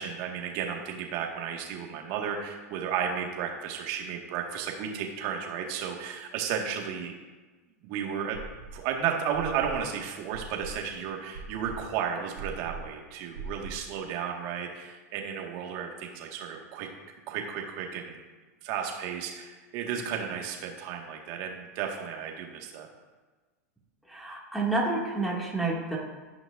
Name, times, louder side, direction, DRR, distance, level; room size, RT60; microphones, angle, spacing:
voice 1, 0.0-7.1 7.8-8.4 8.7-16.9 17.3-18.2 18.6-22.9, right 7 dB, 50° right, 1 dB, 1.9 m, -33 dB
sound 1, 8.3-8.9 9.3-14.0, right 4 dB, 80° right, 3.1 m, -41 dB
voice 2, 24.1-26.0, right 2 dB, ahead, -5 dB, 2.4 m, -29 dB
17.5 x 6.0 x 2.7 m, 1.3 s
hypercardioid pair, 105°, 8 cm